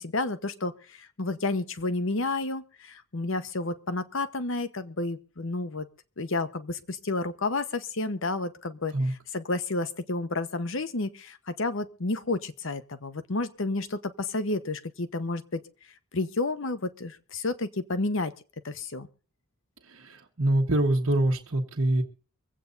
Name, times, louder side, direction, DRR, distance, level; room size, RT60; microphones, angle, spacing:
voice 1, 0.0-5.9 6.2-15.6 16.1-18.3 18.6-19.1, left 2 dB, 60° left, 11 dB, 1.0 m, -31 dB
voice 2, 19.9-22.0, right 1 dB, 60° right, -2 dB, 1.4 m, -25 dB
24.0 x 8.5 x 4.0 m, 0.37 s
head